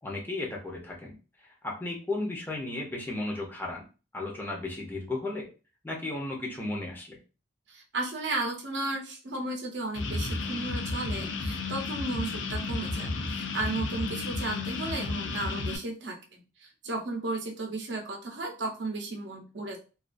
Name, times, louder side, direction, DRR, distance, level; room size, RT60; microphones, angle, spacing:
voice 1, 0.0-1.1 1.6-3.8 4.1-5.5 5.8-7.2, left 2 dB, 10° left, -2 dB, 0.6 m, -34 dB
voice 2, 7.7-19.8, right 2 dB, 65° right, 1 dB, 0.7 m, -34 dB
sound 1, 9.9-15.8, left 3 dB, 70° left, 0.5 m, -32 dB
2.3 x 2.3 x 2.5 m, 0.34 s
head